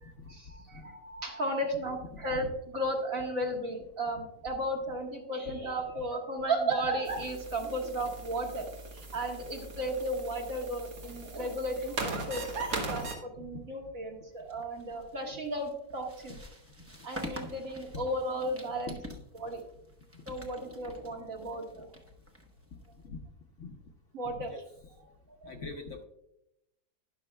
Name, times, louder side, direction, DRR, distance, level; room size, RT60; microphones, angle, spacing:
voice 1, 0.0-8.7 9.1-16.4 17.0-19.0 19.4-19.6 20.3-21.9 24.1-24.5 25.0-25.1 25.4-25.5, right 1 dB, 55° right, 0 dB, 2.0 m, -34 dB
sound 1, 7.1-13.2, right 3 dB, 75° right, 2.1 m, -39 dB
sound 2, 14.4-23.1, equal, 15° right, 0.5 m, -47 dB
voice 2, 25.5-26.0, left 3 dB, 55° left, 3 dB, 1.0 m, -42 dB
12.0 x 10.5 x 2.2 m, 0.84 s
omnidirectional pair, 1.7 m